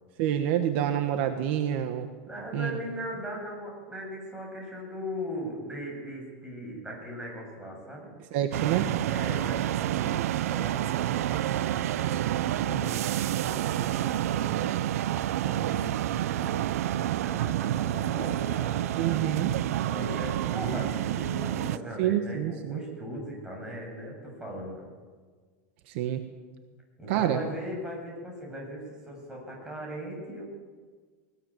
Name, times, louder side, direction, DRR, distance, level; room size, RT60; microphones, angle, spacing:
voice 1, 0.2-2.1 2.5-2.7 8.3-8.9 18.9-19.5 22.0-22.8 25.9-26.2 27.1-27.4, right 11 dB, 55° right, 7 dB, 1.4 m, -27 dB
voice 2, 2.3-8.1 9.1-10.2 10.5-11.7 12.0-14.9 15.4-19.4 19.9-24.9 27.0-30.4, equal, 10° right, -1 dB, 7.5 m, -39 dB
sound 1, 8.5-21.8, right 13 dB, 85° right, 0.6 m, -29 dB
20.5 x 19.5 x 9.0 m, 1.5 s
supercardioid pair, 165°, 8 cm